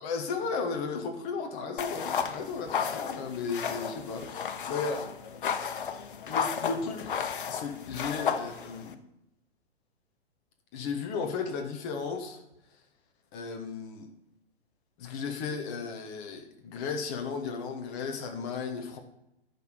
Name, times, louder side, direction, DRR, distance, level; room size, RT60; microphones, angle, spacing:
voice 1, 0.0-5.1 6.3-9.0 10.7-12.4 13.3-14.1 15.0-19.0, left 5 dB, 5° left, 4 dB, 0.3 m, -35 dB
sound 1, 1.8-8.9, left 7 dB, 55° left, 0.9 m, -33 dB
10.0 x 5.1 x 6.8 m, 0.86 s
figure-of-eight pair, 115°, 32 cm